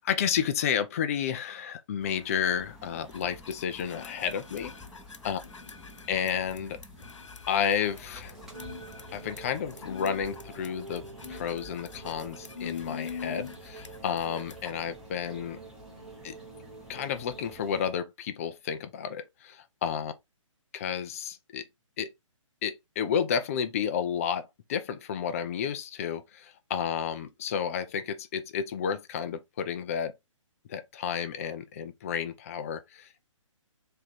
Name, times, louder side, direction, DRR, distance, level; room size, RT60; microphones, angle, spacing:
voice 1, 0.0-4.7 5.2-5.4 6.1-6.8 7.5-8.3 9.1-15.6 16.2-16.4 16.9-20.1 20.7-21.6 22.0-22.1 22.6-30.1 30.7-33.2, left 8 dB, 25° left, 0.5 m, -31 dB
sound 1, 2.0-17.9, left 1 dB, 5° right, 1.0 m, -51 dB
sound 2, 3.1-14.7, left 6 dB, 65° left, 0.6 m, -44 dB
sound 3, 7.7-17.7, right 4 dB, 70° right, 1.2 m, -48 dB
3.5 x 3.2 x 4.1 m
figure-of-eight pair, 135°, 17 cm